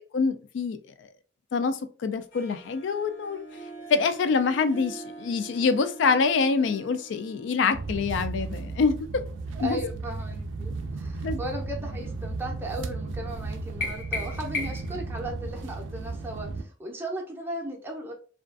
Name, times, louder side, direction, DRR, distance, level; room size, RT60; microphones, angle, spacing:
voice 1, 0.1-0.8 1.5-3.4 3.9-9.0 9.6-9.8 11.2-11.4, left 5 dB, 70° left, 10 dB, 0.3 m, -25 dB
Harp, 2.3-9.2, right 3 dB, 90° left, 0.9 m, -45 dB
sound 1, 7.7-16.6, right 3 dB, 90° right, 0.4 m, -35 dB
voice 2, 9.5-18.1, right 1 dB, 10° right, -1 dB, 0.5 m, -36 dB
sound 2, 13.8-15.0, left 3 dB, 45° left, 0.8 m, -33 dB
2.4 x 2.3 x 2.4 m, 0.39 s
head